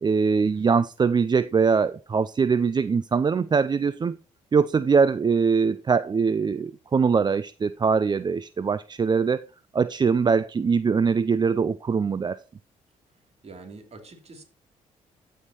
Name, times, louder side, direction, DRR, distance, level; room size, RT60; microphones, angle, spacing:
voice 1, 0.0-4.2 4.5-9.5 9.7-12.4, right 5 dB, 30° right, 0.4 m, -22 dB
voice 2, 13.4-14.4, right 3 dB, 45° right, 2.9 m, -45 dB
14.0 x 5.7 x 2.9 m
supercardioid pair, 55°, 15 cm